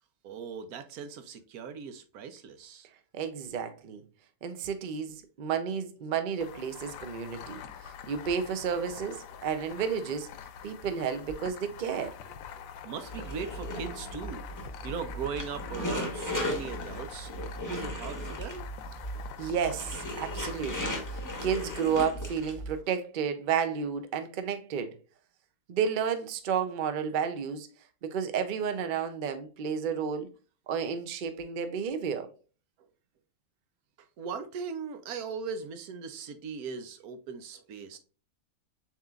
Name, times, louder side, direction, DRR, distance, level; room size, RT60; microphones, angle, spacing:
voice 1, 0.2-2.9 10.6-10.7 12.5-17.3 17.7-18.6 21.3-21.4 34.2-38.0, right 6 dB, 90° right, 1.2 m, -39 dB
voice 2, 3.1-4.0 4.4-10.3 10.6-12.1 19.4-25.0 25.7-27.7 28.0-30.3 30.7-32.3, right 7 dB, 55° right, 0.6 m, -32 dB
sound 1, 6.4-22.0, left 8 dB, 75° left, 0.9 m, -45 dB
sound 2, 13.0-22.8, equal, 15° left, 0.7 m, -37 dB
7.1 x 3.0 x 2.4 m
omnidirectional pair, 1.5 m